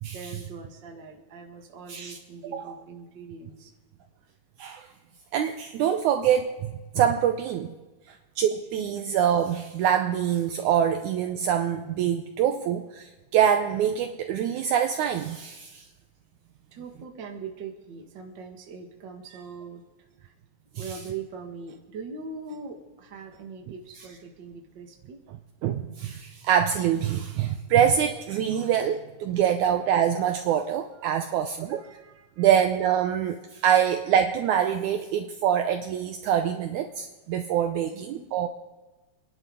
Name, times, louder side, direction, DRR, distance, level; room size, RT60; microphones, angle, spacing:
voice 1, 0.1-3.7 4.0-4.1 5.1-5.2 8.1-8.2 9.0-9.1 16.7-19.8 20.2-20.3 20.8-25.2 31.0-32.5 37.9-38.3, right 5 dB, 45° right, 3 dB, 1.6 m, -42 dB
voice 2, 2.4-2.8 4.6-4.9 5.3-7.7 8.4-15.9 20.8-20.9 25.6-31.8 32.4-38.5, right 9 dB, 80° right, 6 dB, 1.7 m, -25 dB
27.5 x 11.0 x 3.8 m, 1.2 s
omnidirectional pair, 4.2 m